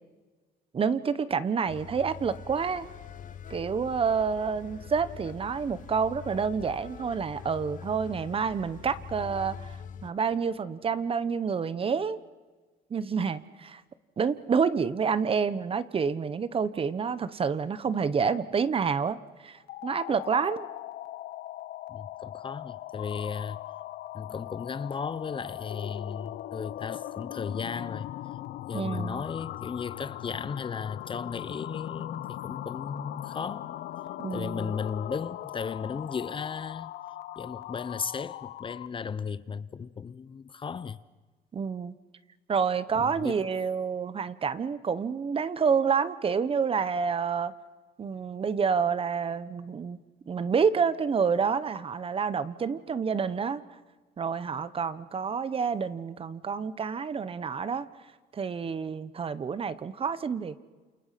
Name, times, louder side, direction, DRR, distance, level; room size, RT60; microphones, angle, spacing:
voice 1, 0.7-2.9 3.5-9.6 10.0-12.2 12.9-13.8 14.2-20.6 28.7-29.2 34.2-34.7 41.5-41.9 42.5-47.5 48.0-50.0 50.3-53.6 54.2-57.9 58.3-60.6, right 6 dB, 35° right, 1.1 m, -28 dB
sound 1, 1.7-10.1, left 7 dB, 50° left, 1.5 m, -44 dB
sound 2, 19.6-39.0, left 14 dB, 70° left, 0.8 m, -40 dB
voice 2, 21.9-23.6 24.1-28.1 28.7-33.7 34.3-36.9 37.4-41.0 42.9-43.4, left 6 dB, 30° left, 0.8 m, -35 dB
29.0 x 28.0 x 5.9 m
cardioid pair, 110°, 17 cm